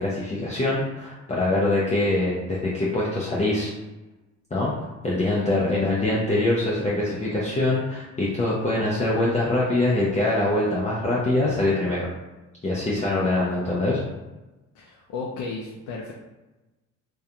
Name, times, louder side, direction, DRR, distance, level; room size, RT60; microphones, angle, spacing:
voice 1, 0.0-3.7 4.5-4.7 5.0-12.1 12.6-14.0, left 2 dB, 25° left, -6 dB, 0.5 m, -23 dB
voice 2, 5.2-5.6 14.7-16.1, left 4 dB, 75° left, -2 dB, 0.5 m, -34 dB
2.3 x 2.2 x 2.8 m, 1.1 s
cardioid pair, 90°, 30 cm